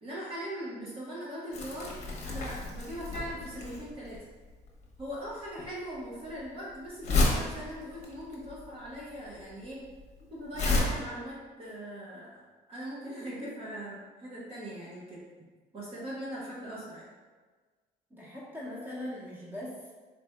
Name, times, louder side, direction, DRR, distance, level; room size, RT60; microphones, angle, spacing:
voice 1, 0.0-1.9 2.2-4.2 5.0-9.8 10.3-15.2 15.7-17.1, equal, 35° right, -7 dB, 0.9 m, -40 dB
Crumpling crinkling, 1.5-10.8, left 2 dB, 45° left, 0.8 m, -32 dB
voice 2, 18.1-19.9, left 1 dB, 10° right, -7 dB, 1.1 m, -40 dB
4.0 x 3.3 x 2.2 m, 1.4 s
cardioid pair, 110°, 17 cm